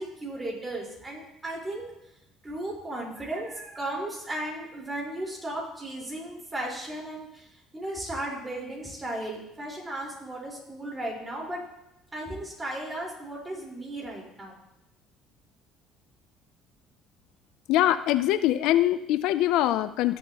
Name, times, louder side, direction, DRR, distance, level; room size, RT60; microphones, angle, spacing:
voice 1, 0.0-1.8 2.4-11.6 12.1-14.5, right 1 dB, 20° right, -3 dB, 4.2 m, -35 dB
voice 2, 17.7-20.2, left 13 dB, 75° left, 13 dB, 0.5 m, -23 dB
18.0 x 7.4 x 2.9 m, 0.85 s
cardioid pair, 110°, 0 cm